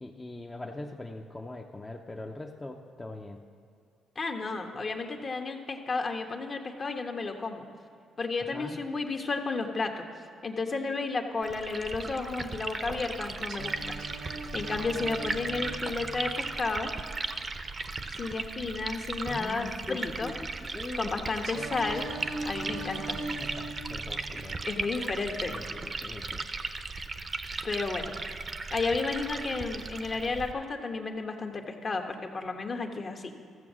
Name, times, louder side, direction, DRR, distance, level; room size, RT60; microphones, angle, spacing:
voice 1, 0.0-3.4 8.5-8.8 19.3-21.4 23.4-24.6 25.7-26.4, left 2 dB, 15° left, 1 dB, 0.7 m, -41 dB
voice 2, 4.1-7.7 8.2-10.1 10.4-13.9 14.5-16.9 18.1-20.3 21.0-22.1 22.4-23.2 24.6-25.5 27.6-28.1 28.7-33.3, left 3 dB, 40° left, 4 dB, 1.1 m, -32 dB
Liquid, 11.4-30.5, right 3 dB, 35° right, 0.7 m, -37 dB
Singing, 13.5-17.5 21.4-25.5, right 2 dB, 75° right, 1.0 m, -41 dB
14.5 x 7.1 x 6.2 m, 2.4 s
cardioid pair, 90°, 0 cm